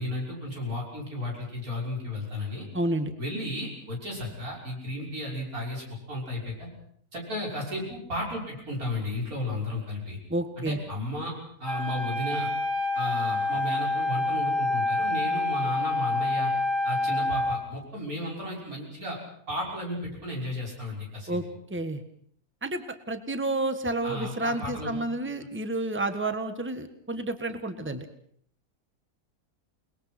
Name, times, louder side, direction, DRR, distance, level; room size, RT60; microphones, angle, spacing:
voice 1, 0.0-2.7 3.2-6.7 7.1-10.2 10.6-11.3 11.6-12.5 12.9-16.5 16.8-19.2 19.5-21.4 24.0-25.0, left 1 dB, 65° right, -2 dB, 6.6 m, -34 dB
voice 2, 2.7-3.1 10.3-10.8 21.3-21.4 21.7-22.0 22.6-28.1, right 2 dB, 10° right, 8 dB, 1.6 m, -30 dB
Wind instrument woodwind instrument, 11.7-17.6, left 2 dB, 55° left, 2.5 m, -27 dB
29.5 x 21.0 x 6.0 m, 0.64 s
omnidirectional pair, 1.6 m